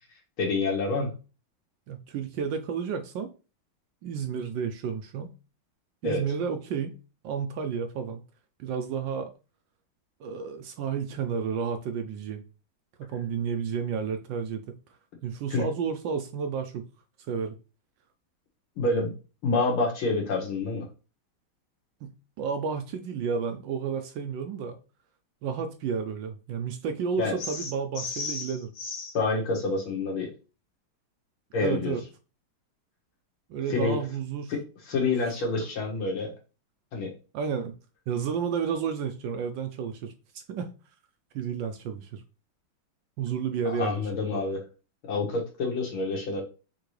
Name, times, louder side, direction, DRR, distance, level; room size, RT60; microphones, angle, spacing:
voice 1, 0.4-1.1 6.0-6.2 15.5-15.6 18.8-19.1 19.4-20.9 27.2-27.7 28.0-28.5 28.8-30.3 31.5-32.0 33.7-34.0 34.5-36.3 36.9-37.1 43.7-44.6 45.0-46.4, left 3 dB, 75° left, 2.1 m, -28 dB
voice 2, 1.9-3.3 4.0-5.3 6.0-7.0 7.2-8.2 8.6-9.3 10.2-12.4 13.0-14.8 15.2-16.9 17.3-17.6 22.0-22.1 22.4-24.8 25.4-28.7 31.6-32.0 33.5-34.5 35.0-35.2 35.6-35.7 37.3-37.7 38.1-40.7 41.3-42.2 43.2-44.5, right 6 dB, 75° right, 1.1 m, -31 dB
5.8 x 2.8 x 3.1 m
omnidirectional pair, 2.3 m